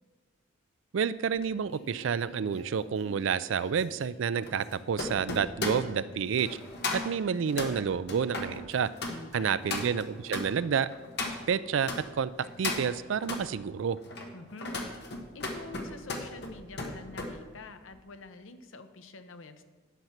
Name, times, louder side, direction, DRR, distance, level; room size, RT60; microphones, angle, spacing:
voice 1, 0.9-6.6 6.9-8.9 9.3-10.9 11.5-12.3 12.6-14.0, right 7 dB, 65° right, 16 dB, 0.4 m, -29 dB
sound 1, 1.4-12.0 12.4-13.4 14.0-17.3 17.7-18.0, left 2 dB, 55° left, 1.3 m, -37 dB
voice 2, 9.1-9.7 14.3-15.0 15.3-19.6, left 3 dB, 70° left, 9 dB, 0.8 m, -47 dB
10.5 x 6.0 x 5.8 m, 1.2 s
head